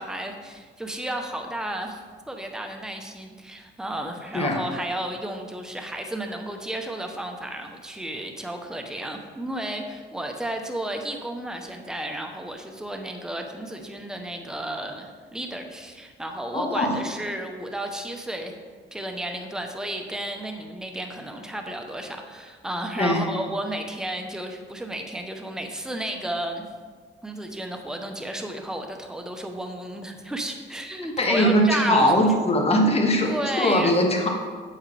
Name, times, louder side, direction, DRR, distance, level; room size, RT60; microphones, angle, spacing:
voice 1, 0.0-18.5 18.9-26.6 27.2-32.3 33.2-33.9, right 1 dB, 5° right, 4 dB, 0.8 m, -32 dB
voice 2, 16.5-16.9 23.0-23.2 31.2-34.3, equal, 30° left, 1 dB, 1.5 m, -21 dB
8.0 x 7.5 x 3.3 m, 1.6 s
cardioid pair, 90°, 20 cm